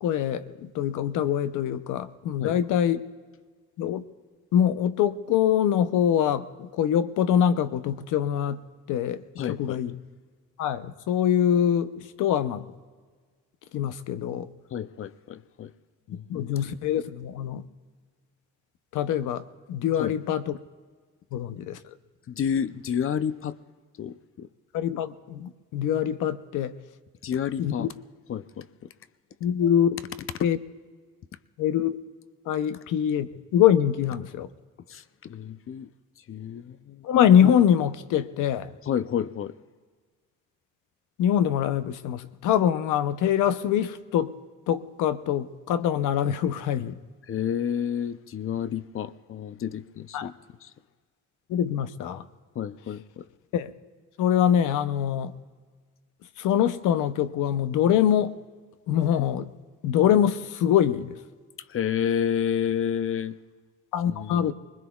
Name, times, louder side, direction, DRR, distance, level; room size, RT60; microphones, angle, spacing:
voice 1, 0.0-3.0 3.8-4.0 4.5-9.9 10.6-12.7 13.7-14.5 16.3-17.6 18.9-20.6 21.3-21.9 24.7-26.8 27.6-27.9 29.4-30.0 30.4-30.6 31.6-32.0 32.5-34.5 37.0-38.7 41.2-44.4 44.7-47.0 50.1-50.3 51.5-52.2 53.5-53.7 54.2-55.3 56.4-58.4 58.9-59.5 59.8-61.2 63.9-64.5, left 9 dB, 85° left, 0.7 m, -24 dB
voice 2, 9.4-9.8 14.7-15.7 16.1-16.4 20.0-20.1 22.3-23.6 24.0-24.5 27.2-27.9 28.3-28.7 34.9-35.9 36.3-37.1 38.8-39.5 47.3-50.3 50.6-50.7 52.6-53.3 61.7-63.4 64.1-64.5, left 8 dB, 45° left, 0.6 m, -30 dB
25.0 x 20.5 x 2.3 m
cardioid pair, 90°, 30 cm